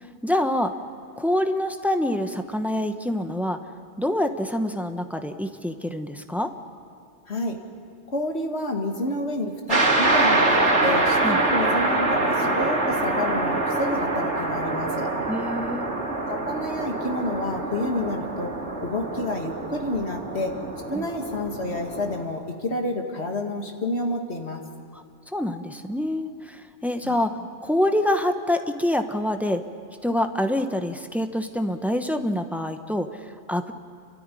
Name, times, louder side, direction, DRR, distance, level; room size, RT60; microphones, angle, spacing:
voice 1, 0.2-0.7 1.2-3.6 4.0-6.5 11.2-11.4 15.3-15.9 20.9-21.1 25.3-29.6 30.0-33.7, left 1 dB, ahead, 7 dB, 0.9 m, -26 dB
voice 2, 8.1-15.1 16.3-18.5 18.8-20.6 20.9-24.6 27.0-27.3, left 1 dB, 70° left, 2 dB, 2.4 m, -29 dB
sound 1, 9.7-22.2, right 2 dB, 85° right, 2.6 m, -25 dB
29.5 x 13.5 x 10.0 m, 2.2 s
omnidirectional pair, 1.2 m